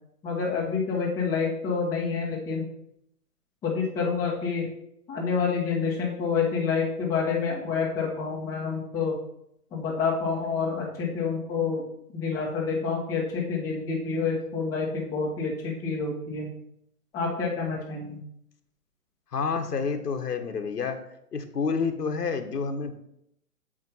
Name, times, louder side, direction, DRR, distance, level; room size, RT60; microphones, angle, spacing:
voice 1, 0.2-2.7 3.6-4.7 5.1-9.1 9.7-11.8 12.1-16.5 17.1-18.2, left 5 dB, 5° left, -5 dB, 1.0 m, -28 dB
voice 2, 19.3-21.0 21.3-22.9, left 5 dB, 90° left, 6 dB, 1.5 m, -29 dB
7.4 x 5.2 x 5.7 m, 0.75 s
hypercardioid pair, 160°, 46 cm